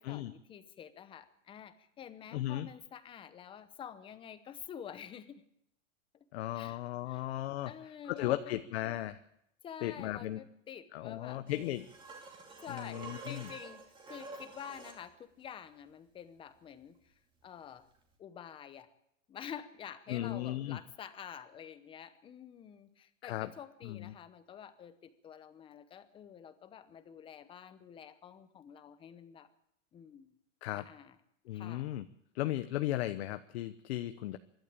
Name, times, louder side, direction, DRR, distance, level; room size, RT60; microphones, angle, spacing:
voice 1, 0.0-5.4 6.5-6.8 7.1-7.3 7.7-8.6 9.6-11.8 12.6-17.1 17.4-17.9 18.2-18.9 19.3-29.5 29.9-30.3 30.8-31.2 31.5-31.9, left 8 dB, 15° left, 13 dB, 0.9 m, -49 dB
voice 2, 2.3-2.7 6.3-7.7 8.1-9.2 9.8-10.4 10.9-11.9 12.7-13.5 20.1-20.8 23.2-23.5 23.8-24.1 30.6-30.9 31.5-32.0 32.3-34.4, left 14 dB, 55° left, 10 dB, 1.0 m, -36 dB
sound 1, 11.5-15.0 17.9-18.0, right 3 dB, 10° right, 2.6 m, -49 dB
25.0 x 12.0 x 8.6 m, 0.78 s
supercardioid pair, 160°, 38 cm